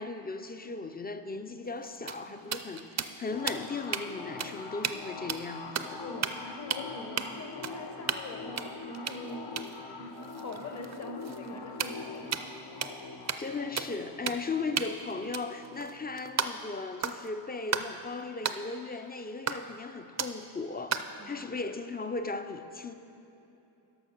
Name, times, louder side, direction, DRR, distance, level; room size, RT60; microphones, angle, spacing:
voice 1, 0.0-6.0 13.4-22.9, left 3 dB, 25° left, 9 dB, 0.4 m, -37 dB
sound 1, 1.7-4.1 4.4-4.5 4.8-5.0 5.3-5.9 6.2-6.5 6.7-6.8 7.2-7.3 7.6-8.3 8.6-12.6 12.8-13.0 13.3-13.5 13.8-13.9 14.3-14.5 14.8-16.7 17.0-17.3 17.7-17.9 18.4-18.6 19.5-19.8 20.2-20.4 20.9-21.2, right 7 dB, 40° right, 0.4 m, -34 dB
sound 2, 3.3-16.5, left 4 dB, 70° left, 0.8 m, -44 dB
voice 2, 6.0-9.5 10.0-12.4 21.2-21.5, left 2 dB, 40° left, 3 dB, 0.9 m, -42 dB
11.0 x 5.8 x 6.5 m, 2.9 s
wide cardioid pair, 115°, 44 cm